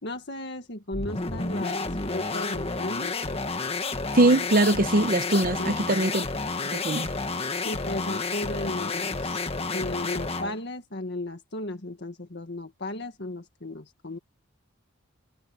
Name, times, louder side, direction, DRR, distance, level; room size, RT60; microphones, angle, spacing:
voice 1, 0.0-3.2 5.6-5.7 7.6-9.4 9.7-14.2, left 1 dB, 55° left, 1.8 m, -35 dB
sound 1, 0.9-10.6, left 3 dB, 30° left, 1.6 m, -30 dB
voice 2, 4.1-6.2 6.7-7.1, right 2 dB, 45° right, 1.0 m, -22 dB
head